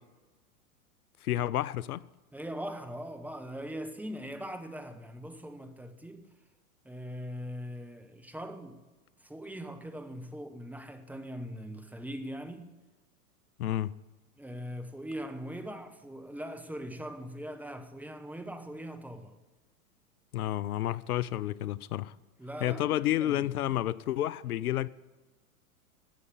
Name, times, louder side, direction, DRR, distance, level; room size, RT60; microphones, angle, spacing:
voice 1, 1.2-2.0 13.6-13.9 20.3-22.1 22.6-24.9, left 13 dB, 80° left, 0.6 m, -30 dB
voice 2, 2.3-6.3 6.8-8.8 9.2-12.7 14.4-19.3 22.4-23.8, equal, 5° right, 1.0 m, -41 dB
13.0 x 8.4 x 8.5 m
hypercardioid pair, 100°, 44 cm